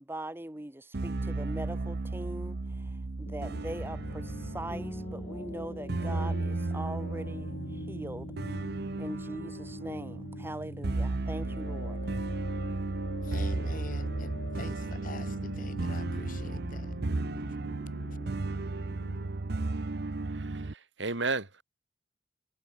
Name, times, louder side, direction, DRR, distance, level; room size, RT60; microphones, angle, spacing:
voice 1, 0.0-2.6 3.2-8.3 9.0-12.0, right 1 dB, 10° right, 1.2 m, -41 dB
sound 1, 0.9-20.7, right 2 dB, 60° right, 0.8 m, -34 dB
sound 2, 3.3-19.3, left 1 dB, 80° left, 2.7 m, -44 dB
Bass guitar, 4.7-11.0, equal, 10° left, 1.2 m, -47 dB
voice 2, 13.2-16.9 17.5-17.6, left 3 dB, 45° left, 0.9 m, -45 dB
voice 3, 20.3-21.6, right 3 dB, 75° right, 2.6 m, -34 dB
head